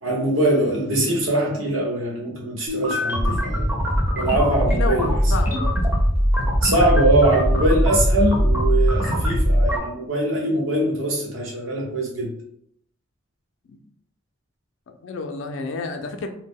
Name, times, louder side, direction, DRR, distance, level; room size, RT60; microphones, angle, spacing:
voice 1, 0.0-3.7 4.1-5.1 6.6-12.3, right 1 dB, 90° right, -2 dB, 0.9 m, -22 dB
sound 1, 2.7-9.8, equal, 10° right, 0.5 m, -20 dB
voice 2, 4.7-5.8 13.7-13.8 15.0-16.3, left 3 dB, 70° left, 6 dB, 0.4 m, -30 dB
2.1 x 2.1 x 3.6 m, 0.71 s
head